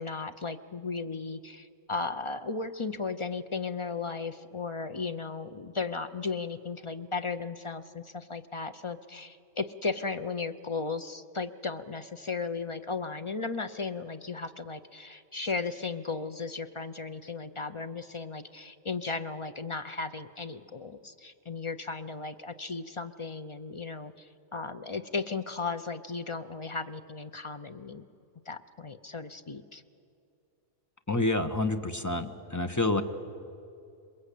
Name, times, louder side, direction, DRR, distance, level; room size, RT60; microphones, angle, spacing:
voice 1, 0.0-28.0 28.5-29.8, left 4 dB, 35° left, 9 dB, 0.6 m, -35 dB
voice 2, 31.1-33.0, left 2 dB, 15° left, 6 dB, 1.0 m, -28 dB
27.5 x 21.5 x 8.4 m, 2.5 s
omnidirectional pair, 1.3 m